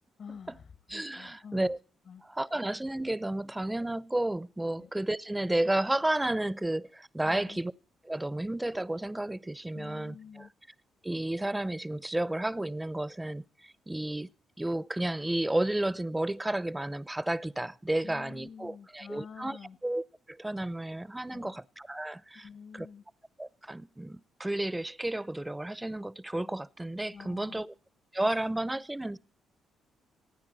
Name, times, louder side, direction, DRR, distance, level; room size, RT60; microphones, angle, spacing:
voice 1, 0.2-1.7 2.1-2.2 4.8-4.9 7.2-7.6 9.7-10.5 18.0-19.8 21.3-21.6 22.3-23.0 27.1-27.6, left 6 dB, 55° left, 1.3 m, -48 dB
voice 2, 0.9-1.8 2.2-7.7 8.1-10.5 11.0-14.3 14.6-22.5 22.7-22.9 23.4-27.7 28.1-29.2, right 1 dB, 10° right, 0.6 m, -32 dB
26.5 x 9.6 x 4.1 m
cardioid pair, 90°, 0 cm